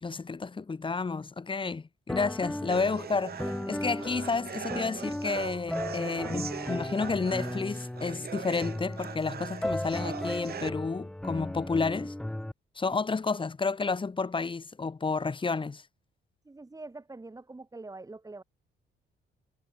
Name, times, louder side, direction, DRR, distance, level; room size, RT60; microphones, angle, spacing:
voice 1, 0.0-12.1 12.8-15.8, left 4 dB, 25° left, 1.4 m, -31 dB
sound 1, 2.1-12.5, left 1 dB, 5° left, 0.4 m, -36 dB
sound 2, 2.7-10.7, right 8 dB, 50° right, 2.2 m, -41 dB
voice 2, 16.5-18.4, right 2 dB, 15° right, 2.3 m, -44 dB
cardioid pair, 90°, 20 cm